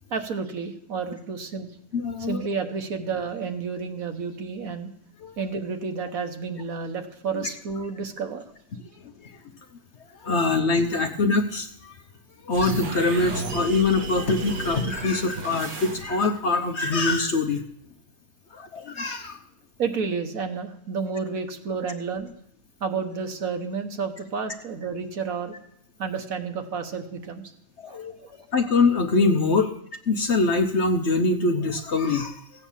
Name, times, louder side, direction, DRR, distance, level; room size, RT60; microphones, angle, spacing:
voice 1, 0.1-1.7 2.2-4.9 5.4-8.4 19.8-22.3 22.8-25.5 26.0-27.4 27.9-28.3, right 5 dB, 60° right, 7 dB, 1.5 m, -31 dB
voice 2, 1.9-2.5 5.2-5.3 7.4-7.5 9.2-9.3 10.2-12.0 12.4-17.6 18.5-19.4 27.8-29.7 30.1-32.4, left 3 dB, 50° left, 6 dB, 0.9 m, -24 dB
sound 1, 12.5-16.4, right 2 dB, 85° right, 2.1 m, -34 dB
15.5 x 8.3 x 7.2 m, 0.71 s
omnidirectional pair, 1.7 m